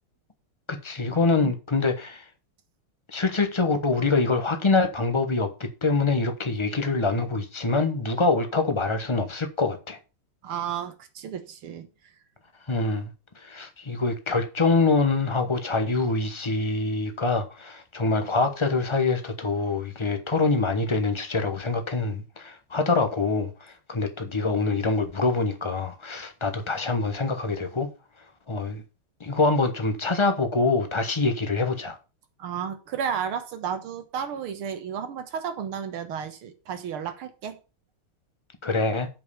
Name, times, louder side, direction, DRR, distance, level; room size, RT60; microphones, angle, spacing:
voice 1, 0.7-2.2 3.1-10.0 12.7-13.1 13.4-27.9 28.5-28.8 29.2-32.0 38.6-39.1, left 3 dB, 40° left, 0.4 m, -25 dB
voice 2, 10.4-11.9 32.4-37.6, right 8 dB, 75° right, 2.2 m, -32 dB
7.6 x 5.4 x 6.8 m
omnidirectional pair, 2.4 m